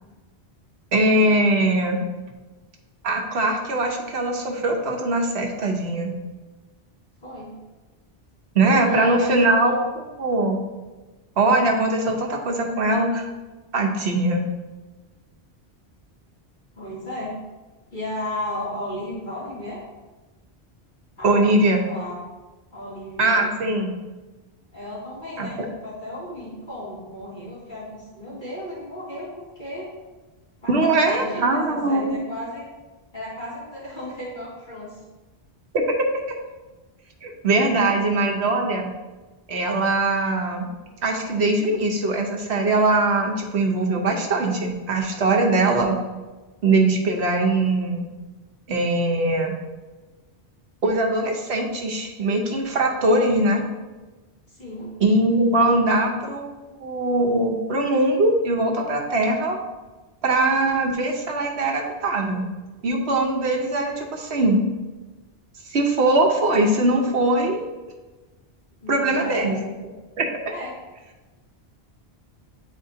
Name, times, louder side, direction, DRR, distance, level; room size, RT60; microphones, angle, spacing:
voice 1, 0.9-2.0 3.0-6.1 8.5-10.6 11.4-13.2 13.7-14.4 21.2-21.8 23.2-23.9 25.4-25.5 30.7-32.1 35.7-36.2 37.2-38.9 39.5-40.7 41.0-46.0 46.6-48.1 48.7-49.5 50.8-53.6 55.0-59.6 60.2-62.4 62.8-64.6 65.7-67.6 68.9-69.5 70.2-70.3, right 2 dB, 90° right, 1 dB, 1.2 m, -21 dB
voice 2, 7.2-7.6 8.8-9.2 9.6-9.7 16.7-17.4 17.9-19.8 21.2-22.2 22.7-23.5 24.7-29.8 30.6-32.6 33.1-35.0 37.6-38.4 54.5-54.9 68.8-69.7 70.5-70.8, left 1 dB, 50° left, -8 dB, 2.3 m, -34 dB
9.7 x 4.2 x 2.8 m, 1.2 s
omnidirectional pair, 1.1 m